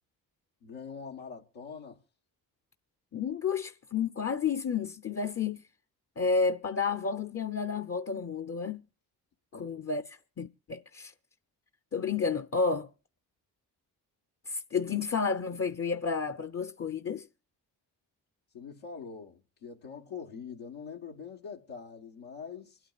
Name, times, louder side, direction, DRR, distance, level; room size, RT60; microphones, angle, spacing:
voice 1, 0.6-2.0 9.5-9.7 18.5-22.8, left 6 dB, 80° left, 1.4 m, -43 dB
voice 2, 3.1-5.6 6.2-8.8 9.5-11.1 11.9-12.9 14.5-17.3, left 5 dB, 30° left, 0.7 m, -31 dB
25.5 x 8.9 x 2.4 m
hypercardioid pair, 40°, 47 cm